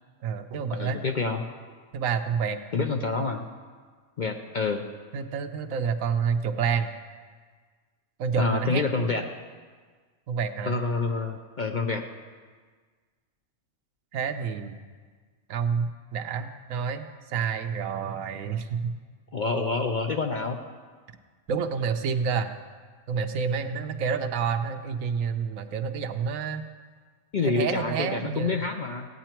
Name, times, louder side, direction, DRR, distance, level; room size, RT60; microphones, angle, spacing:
voice 1, 0.2-1.0 1.9-2.6 5.1-6.9 8.2-9.3 10.3-10.8 14.1-14.8 15.5-18.9 21.5-22.5 23.1-26.6 27.4-28.6, right 6 dB, 80° right, 8 dB, 1.1 m, -29 dB
voice 2, 0.8-1.4 2.7-3.5 4.2-4.8 8.4-9.2 10.7-12.0 19.3-20.6 27.3-29.1, left 4 dB, 50° left, 4 dB, 0.6 m, -27 dB
16.0 x 9.2 x 4.4 m, 1.5 s
omnidirectional pair, 1.4 m